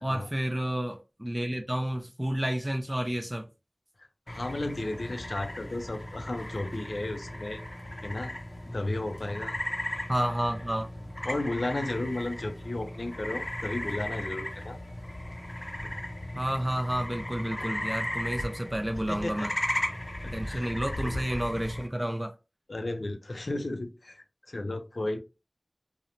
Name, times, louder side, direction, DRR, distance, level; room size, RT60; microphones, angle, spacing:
voice 1, 0.0-3.5 10.1-10.9 16.4-19.5 20.3-22.3, right 1 dB, 20° right, 0.4 m, -30 dB
voice 2, 4.3-7.6 8.0-8.3 8.7-9.5 11.2-14.8 19.1-19.5 20.4-20.7 21.0-21.3 22.7-25.2, left 2 dB, 85° left, 0.4 m, -34 dB
sound 1, 4.3-21.9, left 1 dB, 35° left, 0.5 m, -36 dB
2.9 x 2.0 x 2.5 m
wide cardioid pair, 45°, 0 cm